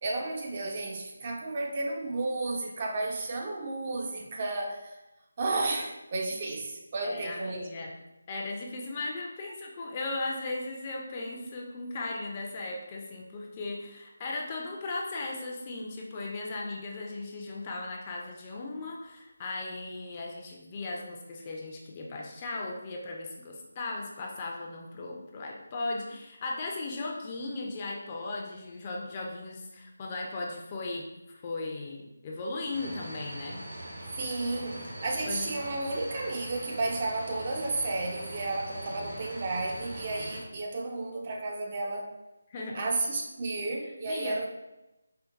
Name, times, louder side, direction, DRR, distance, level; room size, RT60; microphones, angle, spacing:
voice 1, 0.0-4.9 5.4-7.7 34.2-42.1 42.7-44.5, right 2 dB, 35° right, 0 dB, 0.5 m, -32 dB
voice 2, 7.0-8.0 8.3-33.6 35.2-35.6 42.5-42.8 44.1-44.4, left 2 dB, 30° left, -1 dB, 0.4 m, -37 dB
sound 1, 32.7-40.4, right 1 dB, 65° right, 1.0 m, -42 dB
4.4 x 2.1 x 2.4 m, 0.96 s
figure-of-eight pair, 160°, 0 cm